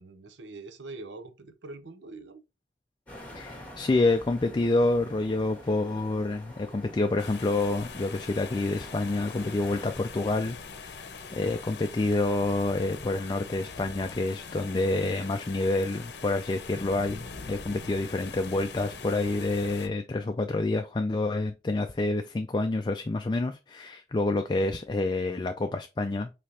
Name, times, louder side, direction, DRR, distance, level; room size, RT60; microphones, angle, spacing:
voice 1, 0.0-2.4, right 3 dB, 85° right, 0.7 m, -44 dB
sound 1, 3.1-9.9, left 1 dB, 10° left, 1.4 m, -47 dB
voice 2, 3.3-26.3, left 2 dB, 25° left, 0.3 m, -28 dB
sound 2, 7.2-19.9, left 5 dB, 70° left, 0.7 m, -43 dB
5.0 x 3.3 x 2.8 m
head